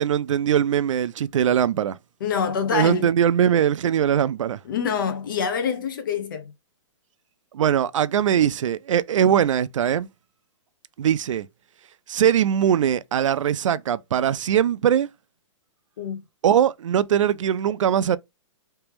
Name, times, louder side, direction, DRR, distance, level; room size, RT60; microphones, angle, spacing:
voice 1, 0.0-2.0 2.7-4.6 7.5-10.1 11.0-11.5 12.1-15.1 16.4-18.2, right 9 dB, 75° right, 0.4 m, -21 dB
voice 2, 2.2-3.1 4.6-6.5 16.0-16.2, left 6 dB, 40° left, 0.8 m, -26 dB
3.3 x 3.0 x 3.1 m
hypercardioid pair, 180°, 16 cm